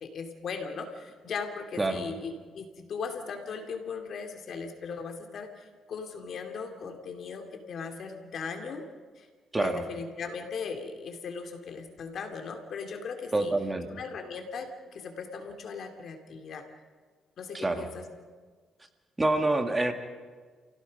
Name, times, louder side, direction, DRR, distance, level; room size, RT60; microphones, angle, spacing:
voice 1, 0.0-8.8 9.2-9.3 9.6-13.5 13.9-16.7 17.4-18.0, left 5 dB, 60° left, 5 dB, 2.8 m, -38 dB
voice 2, 13.3-13.9 17.5-17.9 19.2-19.9, right 2 dB, 20° right, 6 dB, 1.8 m, -26 dB
29.5 x 17.0 x 5.4 m, 1.5 s
cardioid pair, 90°, 0 cm